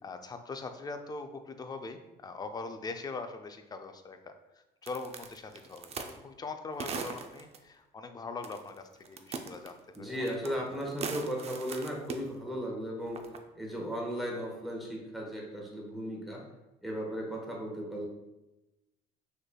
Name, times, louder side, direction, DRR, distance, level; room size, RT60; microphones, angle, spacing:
voice 1, 0.0-4.3 4.8-10.6, left 3 dB, 25° left, 7 dB, 0.4 m, -42 dB
sound 1, 4.9-6.2 6.8-7.6 8.4-8.8 9.1-10.5 10.8-12.2 13.1-13.4, right 5 dB, 40° right, 0.5 m, -39 dB
voice 2, 9.9-13.2 13.5-16.4 16.8-18.1, equal, ahead, -2 dB, 1.1 m, -36 dB
6.4 x 3.2 x 2.2 m, 1.0 s
cardioid pair, 110°, 17 cm